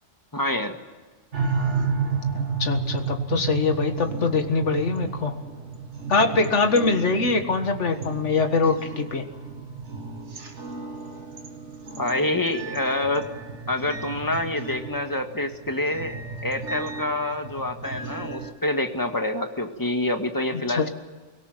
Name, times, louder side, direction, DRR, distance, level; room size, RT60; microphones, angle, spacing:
voice 1, 0.3-0.8 12.0-13.3 13.7-16.2 16.4-20.9, left 1 dB, 15° left, 5 dB, 1.8 m, -27 dB
sound 1, 1.3-18.5, right 5 dB, 70° right, 2.1 m, -32 dB
voice 2, 2.3-5.3 6.1-9.3 20.7-20.9, left 4 dB, 75° left, 6 dB, 2.0 m, -23 dB
24.0 x 18.0 x 9.1 m, 1.3 s
omnidirectional pair, 1.2 m